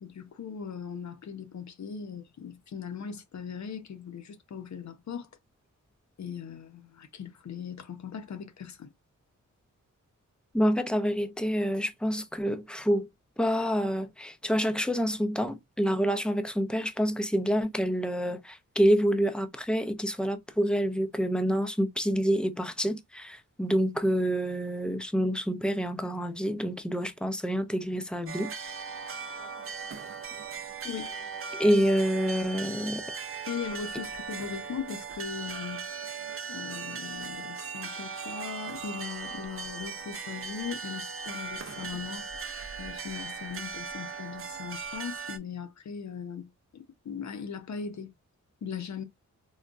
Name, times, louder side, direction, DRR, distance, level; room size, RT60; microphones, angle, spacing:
voice 1, 0.0-5.3 6.2-8.9 30.8-31.1 33.5-35.9 36.5-42.5 42.8-48.1 48.6-49.0, left 7 dB, 65° left, 0.7 m, -39 dB
voice 2, 10.5-13.1 13.4-28.5 31.5-33.0, equal, 5° left, 0.5 m, -27 dB
sound 1, 28.3-45.4, right 5 dB, 45° right, 0.5 m, -38 dB
3.8 x 2.2 x 2.4 m
wide cardioid pair, 100°, 31 cm